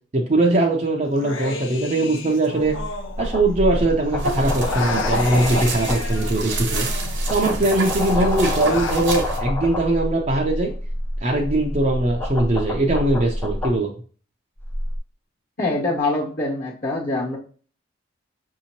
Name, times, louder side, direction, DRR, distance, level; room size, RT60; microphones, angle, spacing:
voice 1, 0.1-2.8 3.2-6.9 7.3-10.7 11.2-13.9, right 2 dB, 35° right, -1 dB, 0.6 m, -21 dB
Human voice, 1.2-3.8 4.1-7.6 7.9-9.0, left 3 dB, 80° left, 0.6 m, -33 dB
sound 1, 2.6-13.8 14.6-15.0, left 1 dB, 10° left, 0.5 m, -27 dB
sound 2, 4.2-9.4, right 3 dB, 65° right, 0.9 m, -29 dB
voice 2, 15.6-17.4, left 2 dB, 45° left, -3 dB, 1.2 m, -24 dB
5.9 x 2.8 x 2.9 m, 0.41 s
head